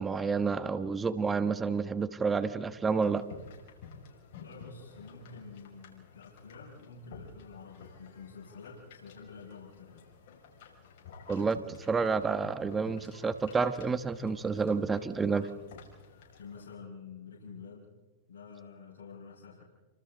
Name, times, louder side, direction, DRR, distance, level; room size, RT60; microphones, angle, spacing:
voice 1, 0.0-3.2 11.3-15.5, right 5 dB, 15° right, 11 dB, 1.3 m, -29 dB
sound 1, 3.0-16.7, left 5 dB, 60° left, 6.3 m, -52 dB
voice 2, 4.3-10.1 16.4-17.9 18.3-19.6, left 5 dB, 80° left, -5 dB, 5.8 m, -48 dB
29.0 x 25.5 x 3.9 m, 1.3 s
hypercardioid pair, 120°, 0 cm